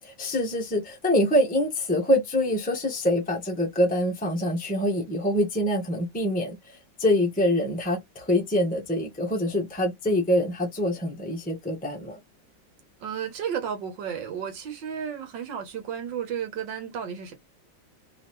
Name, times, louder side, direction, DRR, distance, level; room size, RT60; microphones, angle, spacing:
voice 1, 0.0-12.2, left 1 dB, 5° left, 1.2 m, -25 dB
voice 2, 13.0-17.3, right 8 dB, 75° right, 1.7 m, -33 dB
4.0 x 3.6 x 3.1 m
omnidirectional pair, 2.0 m